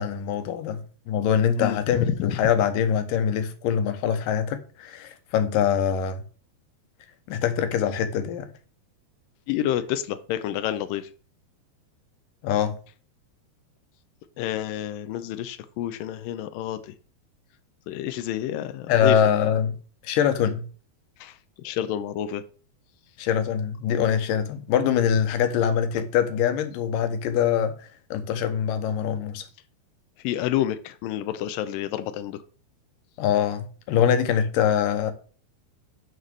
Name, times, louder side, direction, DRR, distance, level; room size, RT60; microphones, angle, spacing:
voice 1, 0.0-6.2 7.3-8.5 12.4-12.8 18.9-19.7 20.0-20.6 23.2-27.7 28.1-29.5 33.2-35.1, left 8 dB, 70° left, 2.4 m, -23 dB
voice 2, 9.5-11.1 14.4-16.9 17.9-19.2 21.2-21.4 21.6-22.4 30.2-32.4, left 12 dB, 90° left, 2.0 m, -29 dB
11.0 x 4.1 x 6.4 m
omnidirectional pair, 4.6 m